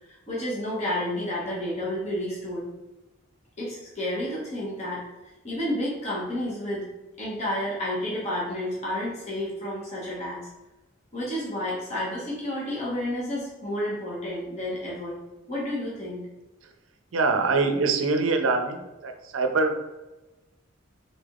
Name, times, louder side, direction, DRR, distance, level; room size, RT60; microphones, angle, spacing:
voice 1, 0.0-2.7 3.6-5.0 5.4-6.9 7.2-10.5 11.1-15.2 15.5-16.2, left 1 dB, 35° left, -6 dB, 1.1 m, -30 dB
voice 2, 17.1-19.9, right 3 dB, 80° right, 5 dB, 0.5 m, -24 dB
4.0 x 3.4 x 2.4 m, 1.0 s
head